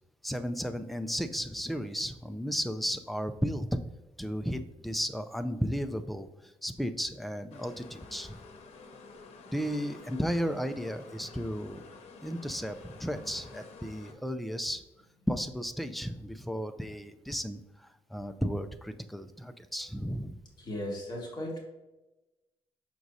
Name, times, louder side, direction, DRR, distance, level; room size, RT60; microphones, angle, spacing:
voice 1, 0.2-3.8 4.2-6.3 6.6-8.4 9.5-11.8 12.2-14.8 15.3-20.4, equal, ahead, 9 dB, 0.4 m, -34 dB
sound 1, 7.5-14.1, left 4 dB, 85° left, 0.9 m, -50 dB
voice 2, 20.6-21.6, left 1 dB, 40° left, -2 dB, 1.9 m, -36 dB
6.1 x 6.0 x 2.7 m, 1.0 s
cardioid pair, 115°, 11 cm